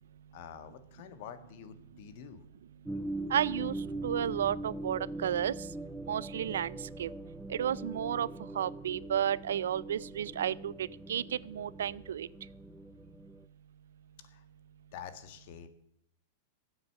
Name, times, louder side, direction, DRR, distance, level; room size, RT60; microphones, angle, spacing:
voice 1, 0.3-2.4 14.2-14.5 14.9-15.7, left 8 dB, 60° left, 11 dB, 1.6 m, -47 dB
sound 1, 2.9-13.4, right 1 dB, 5° right, 0.6 m, -42 dB
voice 2, 3.3-3.8 4.0-5.5 6.1-7.1 7.5-8.3 8.5-12.3, right 10 dB, 85° right, 22 dB, 0.4 m, -32 dB
13.5 x 8.1 x 6.8 m, 0.75 s
hypercardioid pair, 130°, 0 cm